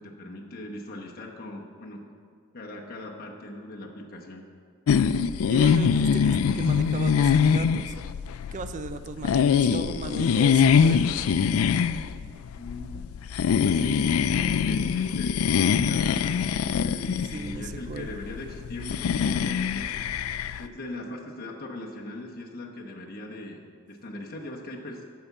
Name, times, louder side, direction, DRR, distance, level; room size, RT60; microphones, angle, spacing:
voice 1, 0.0-2.0 2.5-4.4 12.6-13.0 13.6-19.9 20.6-25.0, left 1 dB, 45° left, -1 dB, 1.0 m, -39 dB
sound 1, 4.9-20.6, left 7 dB, 70° left, 0.3 m, -24 dB
voice 2, 5.1-7.9 8.5-11.2 17.3-18.1, right 4 dB, 35° right, 10 dB, 0.3 m, -36 dB
8.6 x 5.7 x 7.1 m, 2.2 s
head